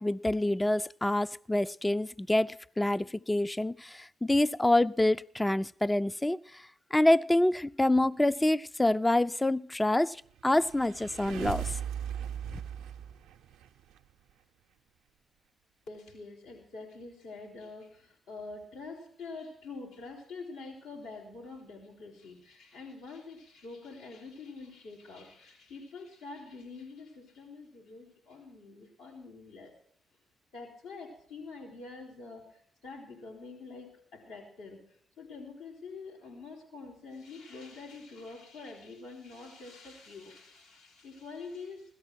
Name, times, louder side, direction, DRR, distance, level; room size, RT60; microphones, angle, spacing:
voice 1, 0.0-6.6 6.9-11.8, left 1 dB, 15° left, 14 dB, 0.5 m, -27 dB
sound 1, 10.4-14.0, right 9 dB, 80° right, 0.7 m, -38 dB
voice 2, 15.9-29.7 30.5-41.9, left 3 dB, 85° left, -3 dB, 4.3 m, -46 dB
17.0 x 13.5 x 4.5 m, 0.62 s
hypercardioid pair, 45°, 0 cm